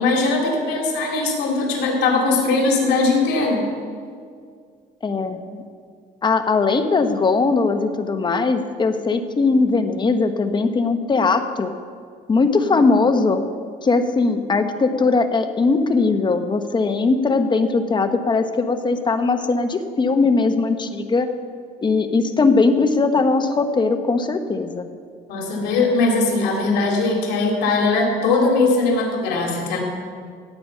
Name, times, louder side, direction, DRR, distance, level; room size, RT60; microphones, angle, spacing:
voice 1, 0.0-3.6 25.3-29.8, left 3 dB, 80° left, 0 dB, 3.1 m, -20 dB
voice 2, 5.0-5.6 6.2-11.7 12.3-13.4 13.8-21.3 21.8-24.9, left 4 dB, 25° left, 8 dB, 1.0 m, -19 dB
17.0 x 8.5 x 5.6 m, 2.2 s
cardioid pair, 110°, 17 cm